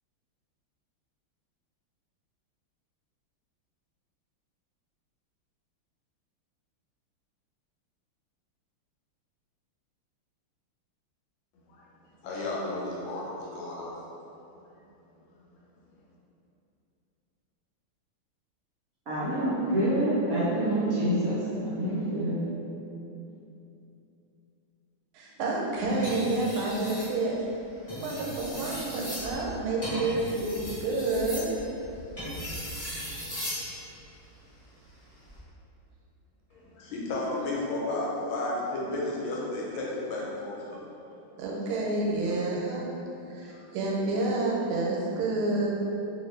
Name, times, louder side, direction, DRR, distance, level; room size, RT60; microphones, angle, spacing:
voice 1, 12.2-13.9 36.5-40.8 43.5-43.6, left 2 dB, 85° left, -4 dB, 1.5 m, -33 dB
voice 2, 19.1-22.4, right 1 dB, 65° right, -11 dB, 0.9 m, -27 dB
voice 3, 25.1-27.5 28.0-31.5 41.4-42.8 43.3-45.7, right 2 dB, 85° right, -3 dB, 1.5 m, -29 dB
sound 1, 25.9-27.1 27.8-33.7 35.1-35.4, equal, 20° left, 1.0 m, -37 dB
2.8 x 2.8 x 3.1 m, 2.8 s
omnidirectional pair, 2.2 m